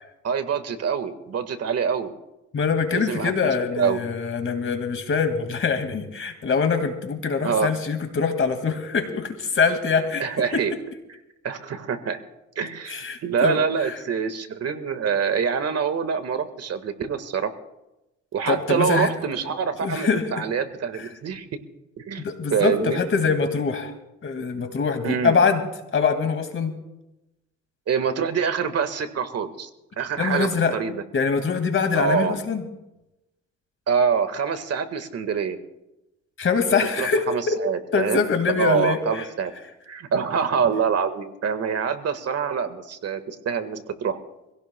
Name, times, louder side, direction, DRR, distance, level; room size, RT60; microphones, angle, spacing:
voice 1, 0.2-2.1 2.9-3.3 3.8-4.0 7.4-7.7 10.2-10.7 11.4-12.2 12.6-17.5 18.3-21.5 22.0-23.0 25.0-25.4 27.9-29.7 30.0-31.0 31.9-32.4 33.9-35.6 36.7-38.2 38.6-39.5 39.9-44.2, right 6 dB, 55° right, 9 dB, 1.6 m, -25 dB
voice 2, 2.5-10.2 10.5-10.6 12.9-13.9 18.5-19.1 19.8-20.2 21.0-21.1 22.2-23.9 24.2-25.6 25.9-26.7 30.2-30.8 31.1-32.6 36.4-37.6 37.9-39.3, left 5 dB, 45° left, 6 dB, 2.1 m, -24 dB
25.5 x 17.0 x 2.2 m, 0.94 s
cardioid pair, 90°, 30 cm